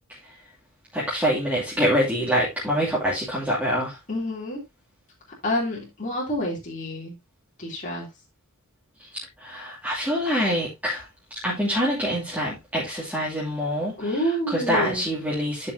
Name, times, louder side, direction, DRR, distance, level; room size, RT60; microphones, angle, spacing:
voice 1, 0.9-4.0 9.0-9.1 9.4-11.1 11.4-15.7, equal, 10° right, 2.9 m, -25 dB
voice 2, 4.1-4.6 5.4-7.1 7.6-8.1 14.0-15.0, equal, 40° left, 3.4 m, -28 dB
11.0 x 6.7 x 2.8 m
head